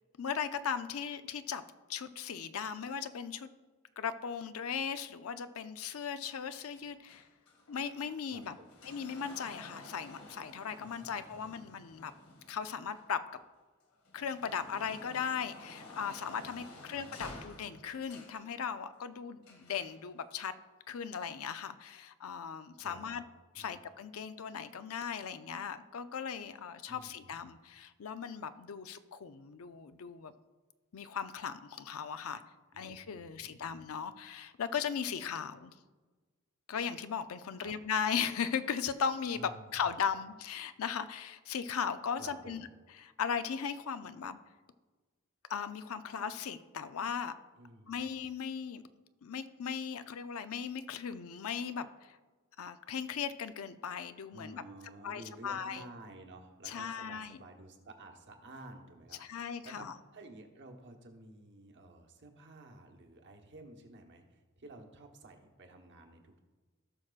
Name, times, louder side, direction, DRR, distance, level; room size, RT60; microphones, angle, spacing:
voice 1, 0.2-1.6 1.9-3.5 4.0-7.3 7.7-8.6 8.8-12.1 12.5-13.2 14.1-20.5 20.9-23.2 23.6-30.3 30.9-32.4 32.8-35.7 36.7-39.4 39.7-42.7 43.0-44.4 45.5-47.3 47.9-48.8 49.2-52.2 52.6-54.6 55.0-55.8 56.6-57.4 59.2-59.9, left 7 dB, 70° left, 11 dB, 0.5 m, -37 dB
sound 1, 6.2-13.4 13.9-18.5 19.4-20.0 20.9-21.0, left 2 dB, 85° left, 1.7 m, -52 dB
voice 2, 8.3-8.7 10.8-11.5 16.4-17.4 22.8-23.1 23.5-23.8 26.9-27.3 32.7-33.8 37.6-37.7 39.3-39.7 42.2-42.7 47.6-48.2 54.3-59.9 60.1-66.4, right 2 dB, 55° right, 3 dB, 1.1 m, -53 dB
17.5 x 6.0 x 2.4 m, 1.3 s
head